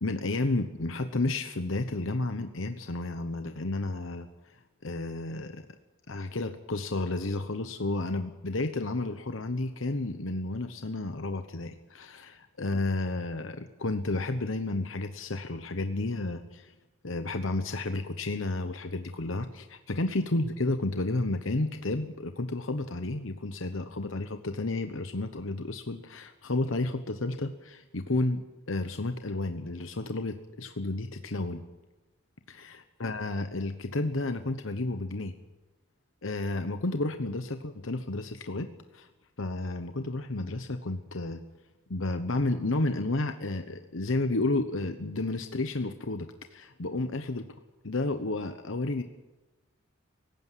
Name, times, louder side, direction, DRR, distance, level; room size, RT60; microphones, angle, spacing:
voice 1, 0.0-4.3 4.8-5.6 6.1-16.7 17.0-31.6 32.5-35.3 36.2-39.1 39.4-41.4 41.9-47.5 47.8-49.0, left 2 dB, 70° left, 8 dB, 1.1 m, -31 dB
18.5 x 16.0 x 9.3 m, 1.1 s
head